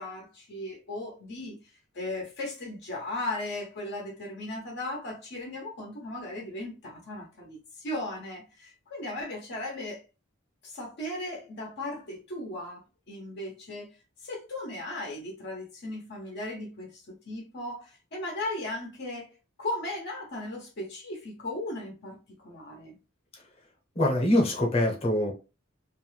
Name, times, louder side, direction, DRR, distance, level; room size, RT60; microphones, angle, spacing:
voice 1, 0.0-1.6 1.9-10.0 10.6-13.9 14.2-19.3 19.6-22.9, left 1 dB, 55° left, 0.7 m, -37 dB
voice 2, 23.9-25.3, left 1 dB, 30° left, 0.9 m, -24 dB
2.5 x 2.2 x 3.2 m
head